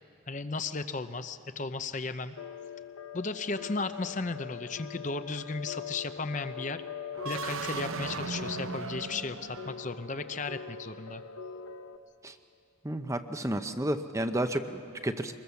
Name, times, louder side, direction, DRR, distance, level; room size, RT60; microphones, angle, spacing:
voice 1, 0.3-2.4 3.1-6.8 7.2-11.2, left 3 dB, 35° left, 10 dB, 0.7 m, -35 dB
sound 1, 2.4-12.0, left 6 dB, 75° left, 0.9 m, -43 dB
sound 2, 7.1-10.1, right 4 dB, 75° right, 1.0 m, -37 dB
voice 2, 12.8-15.3, right 1 dB, 15° right, 8 dB, 0.7 m, -31 dB
24.0 x 21.5 x 7.0 m, 2.6 s
head